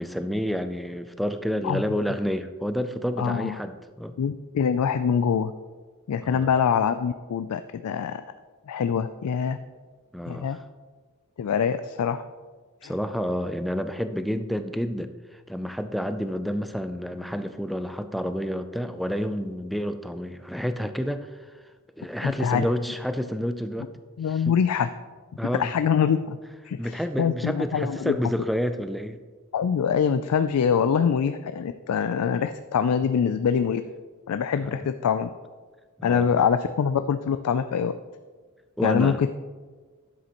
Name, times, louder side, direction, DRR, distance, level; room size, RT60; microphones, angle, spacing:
voice 1, 0.0-4.1 6.2-6.5 10.1-10.6 12.8-21.3 22.0-23.9 24.3-24.6 25.4-25.7 26.8-29.2 33.0-33.1 34.6-34.8 36.0-36.5 38.8-39.2, equal, ahead, 9 dB, 0.3 m, -29 dB
voice 2, 3.2-3.6 4.2-5.5 6.1-8.2 8.7-9.6 10.3-10.6 11.4-12.2 12.8-12.9 22.2-22.7 24.2-24.9 25.6-26.4 26.7-28.2 29.5-33.8 34.3-35.3 36.0-37.9 38.8-39.3, left 7 dB, 80° left, 10 dB, 0.3 m, -24 dB
11.0 x 7.6 x 2.9 m, 1.4 s
head